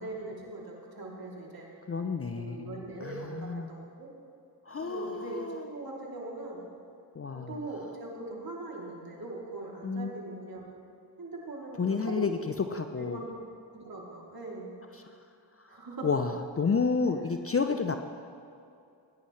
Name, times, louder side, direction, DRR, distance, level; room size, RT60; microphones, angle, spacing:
voice 1, 0.0-1.7 2.3-4.1 4.8-6.7 7.3-10.7 11.2-13.3 13.7-14.7 15.7-16.1, right 2 dB, 45° right, -3 dB, 3.1 m, -41 dB
voice 2, 1.9-3.7 4.7-5.6 7.2-7.6 9.8-10.1 11.8-12.4 12.7-13.2 16.0-18.0, left 5 dB, 30° left, 7 dB, 0.6 m, -30 dB
17.0 x 10.0 x 3.3 m, 2.5 s
supercardioid pair, 40°, 47 cm